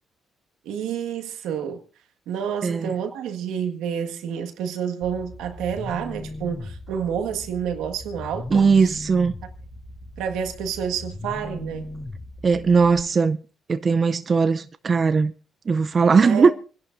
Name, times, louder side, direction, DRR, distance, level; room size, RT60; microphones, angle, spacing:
voice 1, 0.6-1.8 2.3-9.0 9.4-9.5 10.2-11.9 16.2-16.5, right 8 dB, 90° right, 1.6 m, -29 dB
voice 2, 2.6-2.9 8.5-9.3 12.4-13.4 13.7-15.3 15.7-16.5, right 5 dB, 40° right, 0.5 m, -19 dB
sound 1, 5.0-13.0, left 1 dB, 35° left, 4.7 m, -38 dB
27.5 x 11.0 x 2.6 m
cardioid pair, 90°, 0 cm